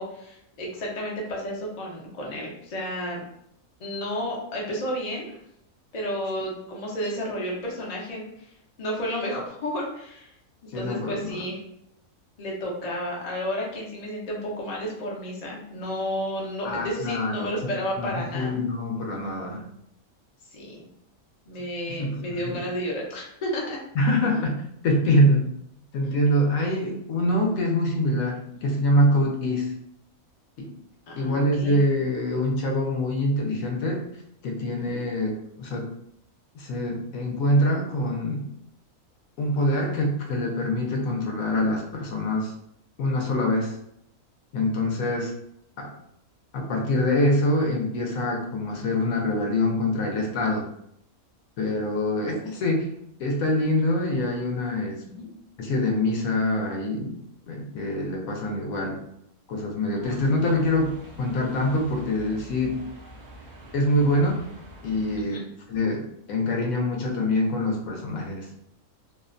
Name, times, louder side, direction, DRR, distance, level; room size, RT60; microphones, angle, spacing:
voice 1, 0.0-3.2 3.8-5.4 5.9-8.3 8.8-10.3 10.6-11.6 12.4-18.5 20.5-20.9 21.5-23.8 26.0-26.2 28.6-28.7 31.2-31.8 34.9-35.0 55.1-55.3 65.3-65.4, equal, 50° left, -3 dB, 0.5 m, -32 dB
voice 2, 10.7-11.5 16.6-17.7 18.0-19.7 22.0-22.6 23.9-24.6 24.8-25.5 25.9-29.7 30.6-30.7 31.2-34.0 34.4-35.3 35.6-35.9 36.5-38.4 39.4-42.5 43.0-43.8 44.5-45.3 45.8-45.9 46.5-50.7 51.6-52.9 53.2-55.0 55.6-57.2 57.5-59.0 59.5-62.8 63.7-64.4 64.8-65.4 65.7-68.5, left 1 dB, 70° left, 1 dB, 0.9 m, -25 dB
sound 1, 60.0-65.2, equal, 75° right, 0.4 m, -45 dB
2.7 x 2.1 x 2.4 m, 0.73 s
omnidirectional pair, 1.5 m